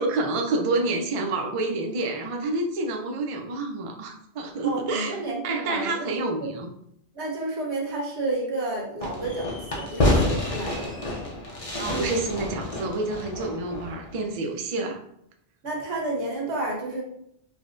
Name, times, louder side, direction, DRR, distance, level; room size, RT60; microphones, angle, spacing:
voice 1, 0.0-5.2 5.4-6.7 11.8-15.0, right 2 dB, 55° right, 3 dB, 0.3 m, -28 dB
voice 2, 4.6-6.1 6.4-6.5 7.1-10.9 11.8-12.2 15.6-17.0, right 2 dB, 85° right, -1 dB, 1.2 m, -31 dB
Fireworks, 9.0-14.2, left 1 dB, 40° left, 0.6 m, -28 dB
4.7 x 2.1 x 2.5 m, 0.72 s
omnidirectional pair, 1.1 m